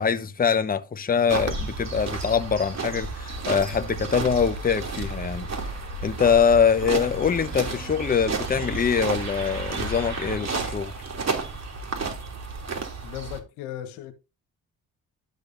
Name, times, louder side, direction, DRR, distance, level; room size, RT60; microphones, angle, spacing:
voice 1, 0.0-5.5 6.0-10.9, left 6 dB, 20° left, 0.9 m, -23 dB
sound 1, 1.3-13.4, right 4 dB, 40° right, 2.9 m, -32 dB
sound 2, 2.6-10.4, equal, 85° right, 5.3 m, -39 dB
voice 2, 13.0-14.1, left 12 dB, 80° left, 1.4 m, -36 dB
12.0 x 6.6 x 2.6 m
hypercardioid pair, 50°, 40 cm